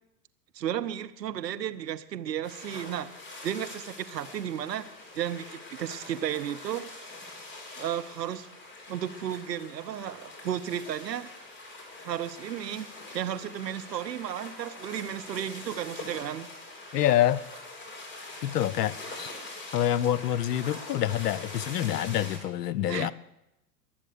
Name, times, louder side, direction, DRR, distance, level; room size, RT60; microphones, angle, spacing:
voice 1, 0.5-3.1 3.4-4.9 5.1-6.9 7.8-8.5 8.9-11.3 12.0-12.9 13.1-16.5 22.9-23.1, right 10 dB, 75° right, 12 dB, 0.9 m, -33 dB
sound 1, 2.4-22.4, left 2 dB, 20° left, 3.8 m, -44 dB
voice 2, 16.9-17.4 18.4-19.3 19.7-23.1, left 11 dB, 70° left, 20 dB, 0.7 m, -26 dB
21.0 x 7.3 x 6.8 m, 0.90 s
figure-of-eight pair, 95°, 50 cm